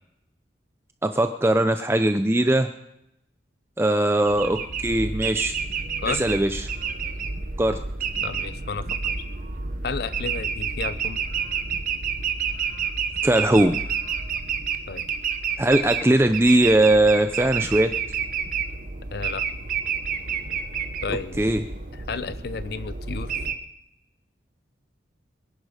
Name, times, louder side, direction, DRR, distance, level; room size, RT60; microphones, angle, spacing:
voice 1, 1.0-2.7 3.8-5.6 6.1-6.7 7.6-7.8 13.2-13.8 15.6-17.9 21.4-21.6, right 1 dB, 15° right, 8 dB, 0.5 m, -20 dB
sound 1, 4.3-23.5, right 6 dB, 45° right, 1.0 m, -29 dB
voice 2, 8.2-9.2 9.8-11.2 14.9-15.0 19.1-19.4 21.0-21.4 21.9-23.4, left 4 dB, 55° left, 14 dB, 0.5 m, -32 dB
22.0 x 10.5 x 4.9 m, 0.83 s
head